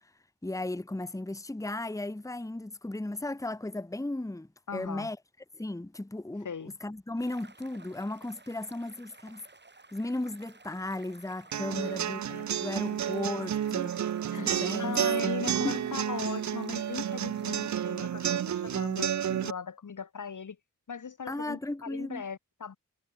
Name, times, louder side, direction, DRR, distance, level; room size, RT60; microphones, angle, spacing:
voice 1, 0.4-5.2 5.5-9.4 9.9-12.2 12.5-13.9 14.3-15.0 15.2-15.8 21.3-22.2, left 2 dB, 10° left, 1.1 m, -35 dB
voice 2, 4.7-5.1 6.4-6.7 11.7-13.0 14.3-20.6 20.9-22.8, left 6 dB, 60° left, 1.4 m, -39 dB
sound 1, 7.2-17.7, right 3 dB, 30° right, 2.5 m, -55 dB
sound 2, 11.5-19.5, right 9 dB, 55° right, 0.5 m, -31 dB
cardioid pair, 55°, 34 cm